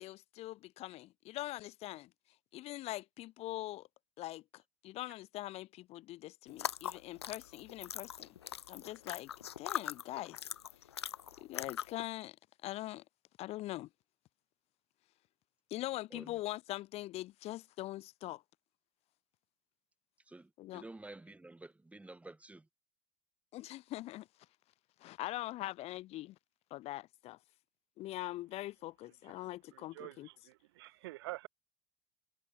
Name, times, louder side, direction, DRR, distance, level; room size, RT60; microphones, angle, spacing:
voice 1, 0.0-2.1 2.5-3.9 4.2-8.3 8.7-9.3 9.6-10.4 11.4-12.4 12.6-13.0 13.4-13.9 15.7-18.4 20.6-20.8 23.5-24.3 25.0-26.4 26.7-27.4 28.0-30.3, left 16 dB, 50° left, 1.5 m, -42 dB
sound 1, 6.5-12.0, left 9 dB, 85° left, 0.8 m, -41 dB
voice 2, 20.3-22.7, right 2 dB, 10° right, 3.4 m, -51 dB
voice 3, 29.7-31.5, right 19 dB, 70° right, 0.8 m, -47 dB
hypercardioid pair, 75°, 13 cm